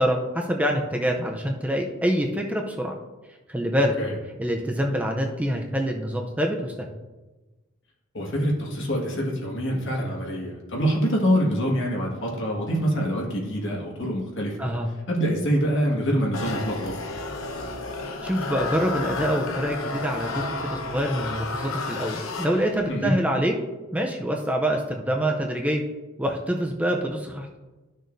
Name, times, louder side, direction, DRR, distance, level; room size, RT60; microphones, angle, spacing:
voice 1, 0.0-2.9 3.5-4.0 4.4-6.9 14.6-14.9 18.2-23.5 23.9-25.8 26.2-27.6, equal, 5° right, 1 dB, 0.6 m, -26 dB
voice 2, 8.1-14.6 15.1-16.9 22.9-23.2, equal, 65° left, -1 dB, 1.8 m, -25 dB
sound 1, 16.3-23.0, left 3 dB, 85° left, 1.0 m, -32 dB
12.0 x 6.4 x 2.7 m, 1.2 s
head